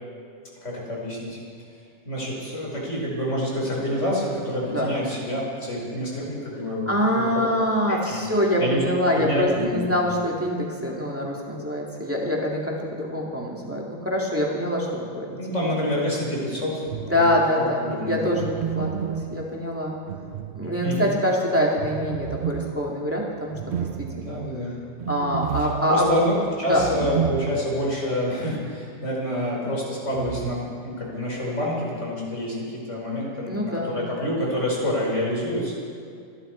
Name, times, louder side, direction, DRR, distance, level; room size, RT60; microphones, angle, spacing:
voice 1, 0.6-1.4 2.0-7.2 7.9-8.2 8.6-8.8 9.1-10.0 15.4-18.3 20.8-21.1 24.3-24.7 25.6-35.8, left 1 dB, 90° left, -4 dB, 4.8 m, -27 dB
voice 2, 4.6-4.9 6.9-15.4 17.0-20.0 20.5-24.4 25.1-26.2 26.6-27.1 33.5-34.1, equal, 10° right, -3 dB, 2.3 m, -25 dB
sound 1, 16.8-17.6 18.4-21.1 21.8-28.0 28.3-28.4 30.1-30.5, right 9 dB, 70° right, 0.8 m, -32 dB
26.5 x 11.5 x 4.5 m, 2.4 s
omnidirectional pair, 1.2 m